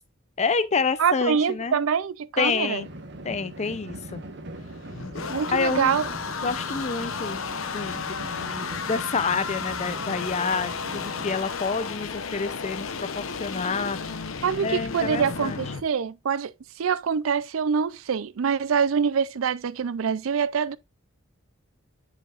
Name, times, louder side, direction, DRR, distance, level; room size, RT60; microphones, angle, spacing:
voice 1, 0.4-1.8 2.4-2.9 3.2-4.2 5.5-6.0 6.4-7.4 7.7-14.0 14.6-15.6, left 5 dB, 35° left, 0.5 m, -28 dB
voice 2, 1.0-2.8 5.3-6.0 14.4-16.5 16.8-20.8, right 6 dB, 80° right, 0.4 m, -25 dB
sound 1, 2.8-11.4, right 1 dB, 60° right, 1.2 m, -40 dB
sound 2, 4.6-15.8, left 5 dB, 80° left, 0.8 m, -33 dB
9.9 x 5.1 x 2.5 m
head